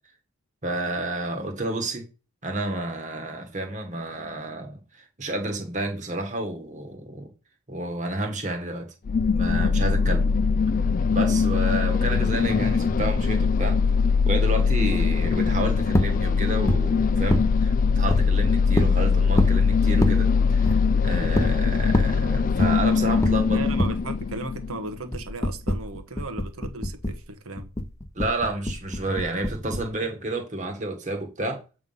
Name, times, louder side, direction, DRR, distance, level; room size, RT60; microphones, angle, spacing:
voice 1, 0.6-2.1 2.4-4.8 5.2-7.3 7.7-8.9 9.3-10.3 11.1-13.8 14.2-23.6 28.1-31.6, right 2 dB, 35° right, 1.6 m, -30 dB
sound 1, 9.1-25.0, left 5 dB, 40° left, 0.3 m, -22 dB
sound 2, 15.9-16.1 16.7-16.8 17.3-17.5 18.1-18.2 18.8-18.9 19.4-19.6 20.0-20.2 20.7-20.8 21.4-21.5 21.9-22.1 22.6-22.8 23.2-23.4 23.8-24.0 25.1-27.2 27.6-29.9, equal, 15° left, 0.8 m, -25 dB
voice 2, 23.4-27.7, right 2 dB, 75° right, 1.3 m, -36 dB
8.0 x 3.6 x 5.5 m
head